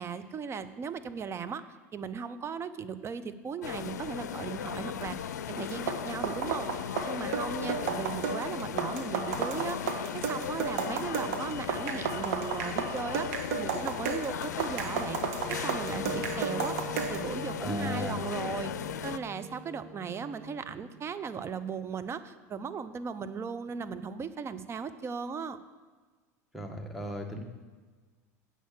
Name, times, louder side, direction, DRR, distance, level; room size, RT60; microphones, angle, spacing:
voice 1, 0.0-1.6 1.9-5.2 5.5-6.7 7.1-15.2 15.5-16.8 17.1-18.7 19.0-25.6, right 6 dB, 30° right, 12 dB, 0.7 m, -37 dB
sound 1, 3.6-19.2, left 9 dB, 85° left, 0.4 m, -37 dB
sound 2, 5.7-17.3, right 6 dB, 70° right, 1.3 m, -33 dB
Wind instrument woodwind instrument, 15.4-21.5, right 1 dB, 25° left, 3.6 m, -44 dB
voice 2, 17.6-18.2 26.5-27.4, right 1 dB, ahead, 3 dB, 1.7 m, -35 dB
8.2 x 6.4 x 7.6 m, 1.4 s
hypercardioid pair, 95°, 9 cm